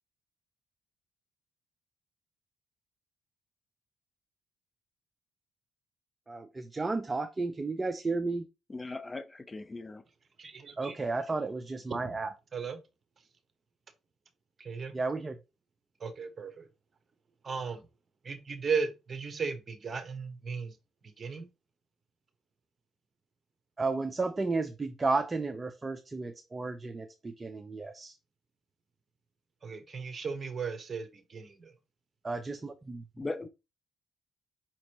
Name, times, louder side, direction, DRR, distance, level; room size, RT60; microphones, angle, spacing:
voice 1, 6.3-8.5 10.8-12.3 14.9-15.4 23.8-28.2 32.2-33.0, right 3 dB, 25° right, 0.5 m, -33 dB
voice 2, 8.7-10.0 33.2-33.5, left 2 dB, 25° left, 0.5 m, -38 dB
voice 3, 10.4-11.0 12.0-12.1 12.5-12.8 14.6-15.0 16.0-16.7 17.4-17.8 18.2-20.7 21.2-21.5 29.6-31.7, right 5 dB, 40° right, 1.0 m, -36 dB
5.2 x 2.9 x 2.9 m
supercardioid pair, 75°, 0 cm